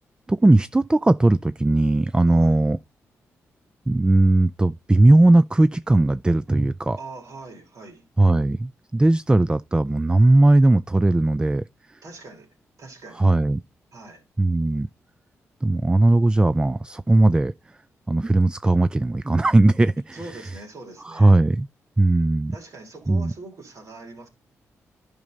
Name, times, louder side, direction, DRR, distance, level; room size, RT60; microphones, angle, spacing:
voice 1, 0.3-2.8 3.9-7.0 8.2-12.0 13.2-13.6 14.4-14.9 15.6-17.5 18.1-20.4 21.0-21.7 22.0-22.5 23.1-23.3, right 2 dB, 15° right, 0.4 m, -18 dB
voice 2, 2.3-2.6 7.0-8.0 12.0-12.5 12.8-13.3 13.9-14.2 20.1-21.4 22.5-24.3, right 3 dB, 65° right, 4.0 m, -42 dB
10.5 x 5.4 x 4.0 m
supercardioid pair, 55°, 6 cm